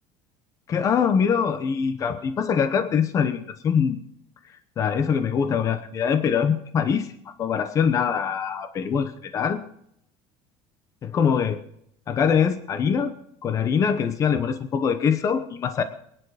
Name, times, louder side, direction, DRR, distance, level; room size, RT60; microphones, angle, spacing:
voice 1, 0.7-4.0 4.8-7.1 7.4-9.6 11.0-11.6 12.1-13.1 13.4-15.8, left 7 dB, 25° left, 10 dB, 1.0 m, -23 dB
22.5 x 10.5 x 4.9 m, 0.71 s
cardioid pair, 170°, 12 cm